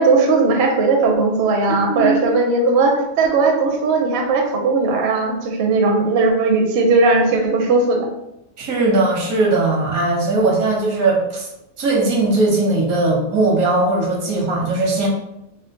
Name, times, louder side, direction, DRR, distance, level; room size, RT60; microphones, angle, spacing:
voice 1, 0.0-8.1, right 3 dB, 60° right, 2 dB, 0.7 m, -17 dB
voice 2, 1.8-2.3 8.6-11.5 11.8-15.1, right 2 dB, 80° right, -1 dB, 1.3 m, -19 dB
3.7 x 2.3 x 2.6 m, 0.86 s
omnidirectional pair, 1.5 m